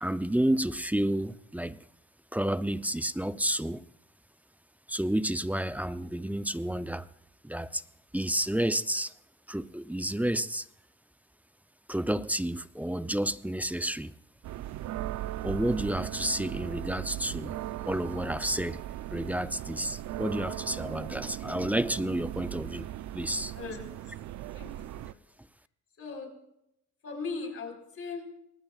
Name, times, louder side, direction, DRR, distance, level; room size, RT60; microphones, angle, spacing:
voice 1, 0.0-1.8 2.3-3.8 4.9-7.1 7.4-7.8 8.1-9.1 9.5-10.7 11.9-14.1 15.4-17.6 17.9-18.8 19.1-22.9 23.1-23.5, right 1 dB, 5° right, 13 dB, 0.5 m, -30 dB
sound 1, 14.4-25.1, right 14 dB, 70° right, 0.5 m, -38 dB
voice 2, 23.5-24.0 24.5-25.2 26.0-26.4 27.0-28.5, left 4 dB, 50° left, 3 dB, 4.3 m, -39 dB
23.0 x 19.0 x 2.4 m, 0.81 s
cardioid pair, 90°, 30 cm